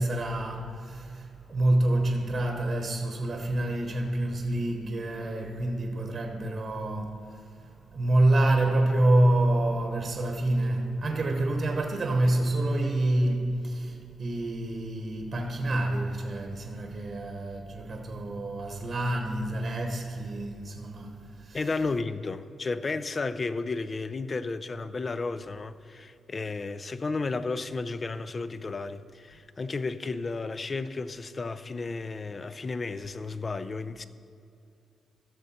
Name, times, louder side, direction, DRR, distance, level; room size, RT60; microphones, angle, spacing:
voice 1, 0.0-7.4 7.9-21.6, right 1 dB, 45° right, 0.9 m, -27 dB
voice 2, 21.5-34.0, left 3 dB, 35° left, 0.4 m, -33 dB
13.0 x 6.4 x 4.2 m
cardioid pair, 100°, 0 cm